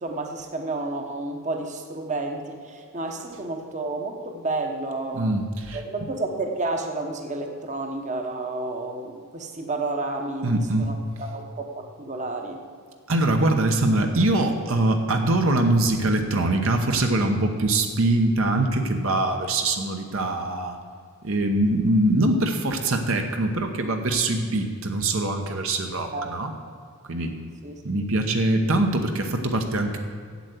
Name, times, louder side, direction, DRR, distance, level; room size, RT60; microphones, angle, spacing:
voice 1, 0.0-5.3 5.7-12.6 26.1-26.3 27.6-27.8, right 2 dB, 35° right, 3 dB, 1.0 m, -31 dB
voice 2, 5.1-5.8 10.4-10.9 13.1-20.8 21.2-26.5 27.1-27.3 27.8-30.0, right 2 dB, 65° right, 4 dB, 1.0 m, -23 dB
8.1 x 7.9 x 8.2 m, 2.2 s
head